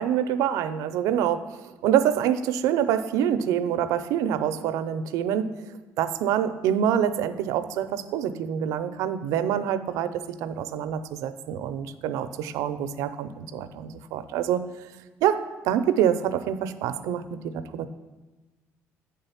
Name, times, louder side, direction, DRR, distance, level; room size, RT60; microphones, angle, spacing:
voice 1, 0.0-5.5 6.0-14.6 15.2-17.9, right 9 dB, 80° right, 10 dB, 0.4 m, -26 dB
8.9 x 3.7 x 5.6 m, 1.2 s
cardioid pair, 145°, 5 cm